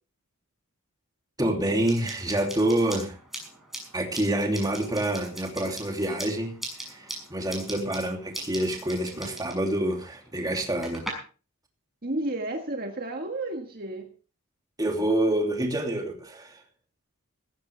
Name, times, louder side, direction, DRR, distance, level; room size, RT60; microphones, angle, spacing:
voice 1, 1.4-3.2 3.9-11.0 14.8-16.6, right 1 dB, 15° right, 2 dB, 2.9 m, -27 dB
sound 1, 1.9-11.1, right 1 dB, ahead, 6.1 m, -41 dB
voice 2, 7.7-8.0 9.1-9.4 12.0-14.1, right 2 dB, 40° right, 3 dB, 1.7 m, -33 dB
17.5 x 15.5 x 3.4 m, 0.37 s
head